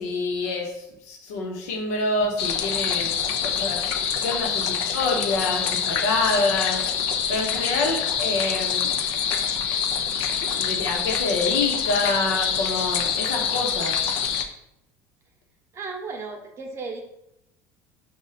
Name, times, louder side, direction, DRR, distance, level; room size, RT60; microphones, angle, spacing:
voice 1, 0.0-3.1 3.4-3.8 4.2-6.9 7.3-8.9 10.5-14.0, left 3 dB, 90° left, 1 dB, 0.9 m, -27 dB
sound 1, 2.4-14.4, left 7 dB, 70° left, 0.5 m, -26 dB
voice 2, 15.7-17.0, right 4 dB, 35° right, 2 dB, 0.8 m, -34 dB
5.1 x 2.3 x 4.0 m, 0.83 s
supercardioid pair, 120°, 8 cm